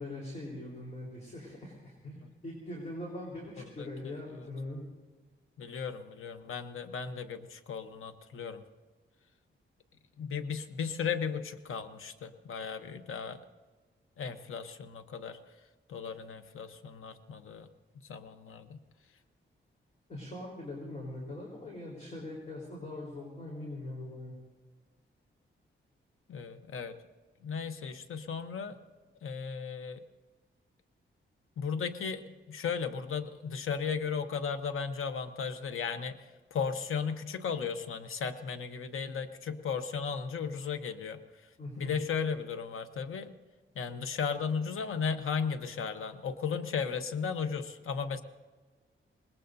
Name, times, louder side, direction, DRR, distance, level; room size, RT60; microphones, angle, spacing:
voice 1, 0.0-4.8 20.1-24.4 41.6-41.9, left 1 dB, 35° left, -3 dB, 4.1 m, -42 dB
voice 2, 3.8-4.5 5.6-8.6 10.2-13.4 14.2-15.4 15.9-17.7 18.1-18.8 26.3-27.0 27.4-28.8 29.2-30.0 31.6-41.2 41.8-43.3 43.7-48.2, left 6 dB, 80° left, 8 dB, 1.0 m, -35 dB
25.0 x 20.0 x 2.7 m, 1.3 s
wide cardioid pair, 130°, 21 cm